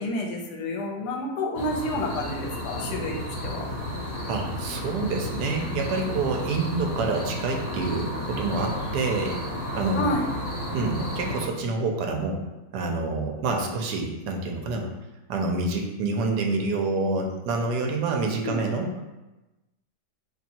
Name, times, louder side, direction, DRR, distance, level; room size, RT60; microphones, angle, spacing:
voice 1, 0.0-3.1 3.4-3.6 10.0-10.3 18.4-19.0, left 1 dB, 75° left, 1 dB, 1.1 m, -29 dB
sound 1, 1.5-11.4, equal, 50° left, 1.0 m, -32 dB
voice 2, 4.3-9.4 9.7-10.1 10.7-12.4 12.7-14.9 15.3-18.9, right 3 dB, 80° right, 2 dB, 1.1 m, -27 dB
2.9 x 2.6 x 4.2 m, 1.0 s
omnidirectional pair, 1.8 m